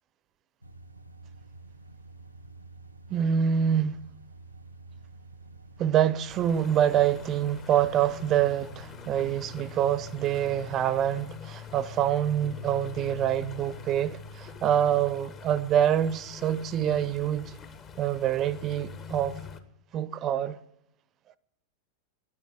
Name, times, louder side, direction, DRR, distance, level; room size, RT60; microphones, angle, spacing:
sound 1, 0.6-10.8, right 3 dB, 85° right, 0.7 m, -49 dB
voice 1, 3.1-4.0 5.8-17.5 18.0-19.4 19.9-20.6, right 10 dB, 30° right, 0.7 m, -26 dB
sound 2, 6.3-19.6, left 8 dB, 30° left, 1.3 m, -44 dB
12.5 x 10.0 x 7.9 m
figure-of-eight pair, 90°, 0 cm